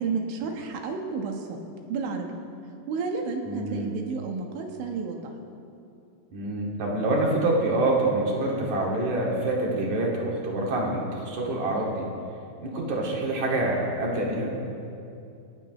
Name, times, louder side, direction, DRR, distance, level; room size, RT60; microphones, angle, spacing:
voice 1, 0.0-1.6 1.9-2.3 2.9-5.2, right 5 dB, 75° right, 2 dB, 3.8 m, -31 dB
voice 2, 3.4-3.9 6.3-12.1 12.6-14.5, right 2 dB, 45° right, -3 dB, 3.1 m, -26 dB
28.5 x 15.0 x 3.2 m, 2.6 s
omnidirectional pair, 5.5 m